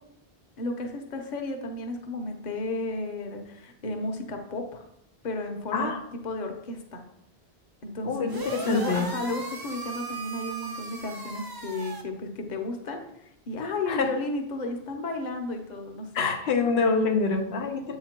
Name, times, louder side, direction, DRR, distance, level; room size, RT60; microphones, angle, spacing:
voice 1, 0.6-4.8 5.2-5.9 6.2-7.0 7.8-8.3 8.6-16.3, left 2 dB, 45° left, 4 dB, 0.9 m, -33 dB
voice 2, 8.0-9.1 13.9-14.1 16.1-18.0, left 4 dB, 80° left, 4 dB, 0.9 m, -26 dB
sound 1, 8.3-12.0, right 3 dB, 25° right, 0.5 m, -37 dB
7.6 x 2.9 x 4.4 m, 0.75 s
omnidirectional pair, 1.1 m